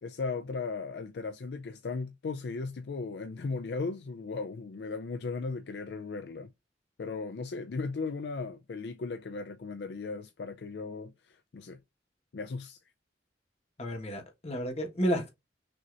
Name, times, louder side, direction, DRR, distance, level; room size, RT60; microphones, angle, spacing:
voice 1, 0.0-6.5 7.0-11.8 12.3-12.8, left 4 dB, 60° left, 0.4 m, -37 dB
voice 2, 13.8-15.3, equal, 35° left, 1.3 m, -31 dB
6.2 x 2.8 x 2.5 m
head